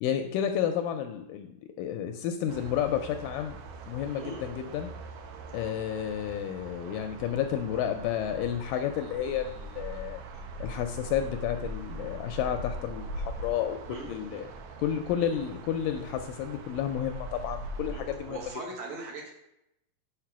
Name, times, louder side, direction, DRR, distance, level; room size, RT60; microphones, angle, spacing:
voice 1, 0.0-3.6 3.9-4.9 5.5-10.2 10.6-13.8 14.1-14.5 14.8-18.4, left 9 dB, 80° left, 6 dB, 2.0 m, -31 dB
sound 1, 2.5-18.5, right 2 dB, 85° right, 2.6 m, -41 dB
voice 2, 4.1-4.5 5.5-5.8 13.9-14.4 15.3-15.4 17.9-19.3, right 3 dB, 65° right, -1 dB, 2.2 m, -42 dB
6.6 x 5.0 x 5.9 m, 0.85 s
omnidirectional pair, 4.2 m